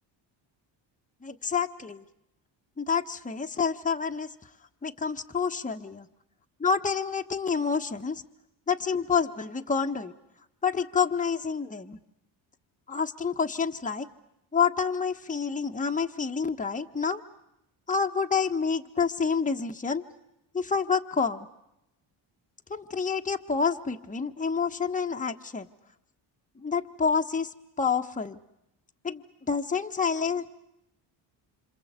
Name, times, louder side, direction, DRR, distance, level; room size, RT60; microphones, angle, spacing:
voice 1, 1.2-2.0 2.8-4.3 4.8-6.1 6.6-8.2 8.7-10.1 10.6-12.0 12.9-14.1 14.5-17.2 17.9-20.0 20.5-21.5 22.7-25.7 26.6-28.4 29.0-30.5, left 5 dB, 15° left, 5 dB, 1.3 m, -28 dB
27.0 x 27.0 x 8.2 m, 0.88 s
cardioid pair, 90°, 48 cm